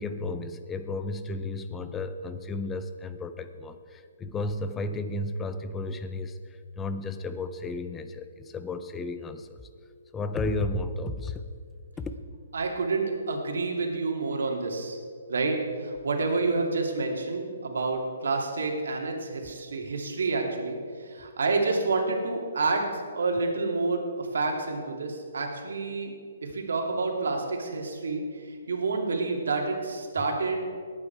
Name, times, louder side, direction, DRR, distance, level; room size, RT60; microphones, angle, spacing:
voice 1, 0.0-9.7 10.1-11.4 12.0-12.1 19.4-19.5, left 2 dB, 5° left, 10 dB, 0.4 m, -33 dB
voice 2, 12.5-15.0 15.3-26.1 26.4-30.6, right 3 dB, 75° right, 1 dB, 2.5 m, -29 dB
19.0 x 8.9 x 4.6 m, 2.1 s
hypercardioid pair, 180°, 0 cm